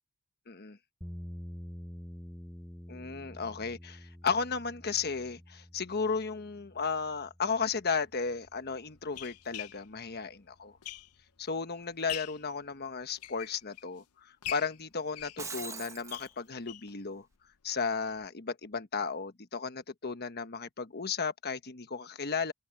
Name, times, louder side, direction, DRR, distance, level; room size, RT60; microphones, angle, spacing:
voice 1, 0.5-0.8 2.9-10.7 11.4-17.2 17.6-22.5, left 5 dB, 45° left, 1.2 m, -34 dB
sound 1, 1.0-9.1, equal, ahead, 0.7 m, -48 dB
sound 2, 7.5-7.7 8.5-11.4 11.8-12.5 13.0-14.0 14.4-17.0 17.3-17.4 17.7-17.8 18.2-18.3, left 13 dB, 90° left, 0.7 m, -43 dB
Shatter, 15.2-16.3, right 4 dB, 15° right, 1.2 m, -41 dB
open air
head